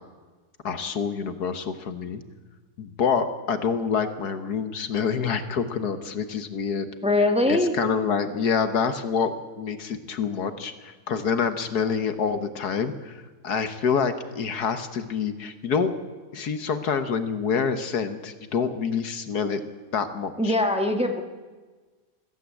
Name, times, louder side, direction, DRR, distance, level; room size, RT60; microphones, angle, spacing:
voice 1, 0.6-2.2 2.8-6.9 7.5-15.9 16.3-19.6 19.9-20.6, left 6 dB, 70° left, 9 dB, 1.7 m, -27 dB
voice 2, 7.0-7.7 20.4-21.2, left 2 dB, 5° right, 4 dB, 1.5 m, -22 dB
21.5 x 15.5 x 8.4 m, 1.3 s
omnidirectional pair, 1.8 m